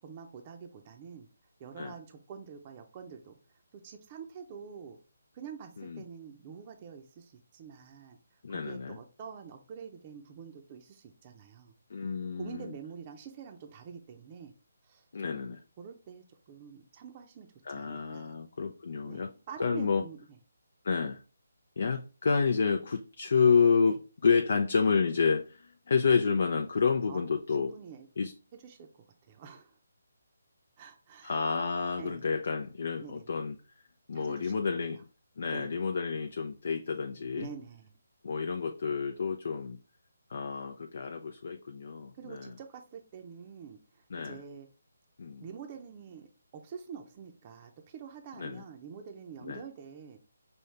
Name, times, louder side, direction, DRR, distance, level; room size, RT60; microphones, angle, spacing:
voice 1, 0.0-1.3 1.6-3.4 3.8-5.0 5.3-11.7 12.4-14.5 14.8-15.1 15.3-18.4 19.0-20.4 23.9-24.0 27.1-27.3 27.6-28.1 28.5-28.9 29.2-29.8 30.8-31.4 32.0-32.2 33.0-33.3 34.1-35.0 35.5-35.8 37.4-37.9 42.2-44.7 45.4-46.3 46.5-50.2, right 7 dB, 30° right, 0.6 m, -47 dB
voice 2, 8.4-9.0 11.9-12.7 15.1-15.6 17.7-19.3 19.6-20.0 20.8-21.2 21.8-27.7 28.2-28.3 31.2-33.5 34.1-35.0 35.4-37.5 38.2-39.8 40.3-42.5 44.1-44.4 45.2-45.4 48.4-48.6 49.4-49.6, left 5 dB, 60° left, 0.5 m, -29 dB
5.5 x 2.7 x 3.3 m
figure-of-eight pair, 155°, 0 cm